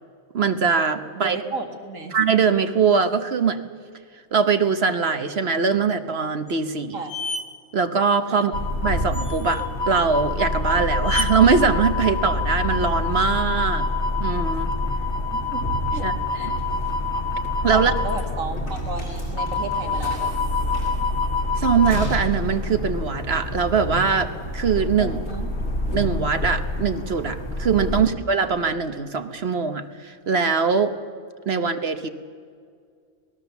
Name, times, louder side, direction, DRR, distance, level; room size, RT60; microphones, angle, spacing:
voice 1, 0.3-1.4 2.1-3.6 4.3-7.0 7.7-8.5 8.8-13.9 14.2-14.7 16.0-16.1 17.6-17.9 21.6-25.2 25.9-31.0 31.5-32.1, right 5 dB, 55° right, 9 dB, 1.1 m, -22 dB
voice 2, 1.1-2.2 6.9-7.1 8.3-8.5 15.5-15.6 15.9-16.5 17.7-20.6 25.0-25.5, right 3 dB, 75° right, 4 dB, 2.5 m, -33 dB
sound 1, 6.5-6.6 7.1-7.5 9.1-9.7 11.0-11.3, left 3 dB, 30° left, 1.4 m, -30 dB
sound 2, 8.5-28.0, left 2 dB, 55° left, 2.5 m, -26 dB
sound 3, 18.6-24.2, equal, 75° left, 6.1 m, -38 dB
25.5 x 19.5 x 7.1 m, 2.1 s
omnidirectional pair, 1.4 m